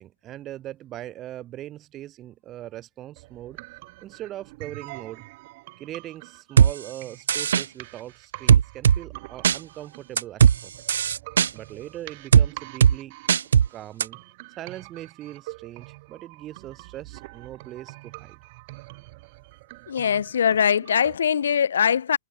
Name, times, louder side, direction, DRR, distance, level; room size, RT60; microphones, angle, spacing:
voice 1, 0.0-3.6 4.0-5.2 5.8-10.7 11.5-13.2 13.7-14.2 14.5-18.4, right 13 dB, 20° right, 5.1 m, -40 dB
sound 1, 3.2-21.2, right 24 dB, 40° right, 6.4 m, -45 dB
sound 2, 6.6-6.7 7.3-7.6 8.5-9.0 9.4-9.6 10.2-10.6 10.9-11.5 12.3-12.5 12.8-12.9 13.3-13.7 14.0-14.1, right 8 dB, 80° right, 0.7 m, -16 dB
voice 2, 19.9-22.2, left 8 dB, 85° left, 1.1 m, -22 dB
hypercardioid pair, 155°, 0 cm